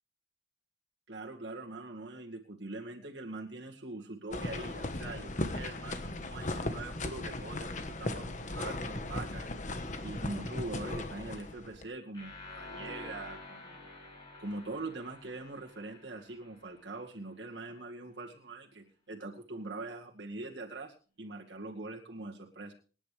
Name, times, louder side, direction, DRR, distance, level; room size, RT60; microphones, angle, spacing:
voice 1, 1.1-9.5 10.0-13.9 14.4-22.7, right 2 dB, 80° right, -1 dB, 2.2 m, -43 dB
sound 1, 4.3-11.9, left 2 dB, 45° left, 1.3 m, -37 dB
sound 2, 12.1-17.0, left 2 dB, 25° left, 6.8 m, -49 dB
26.5 x 9.7 x 3.4 m, 0.38 s
head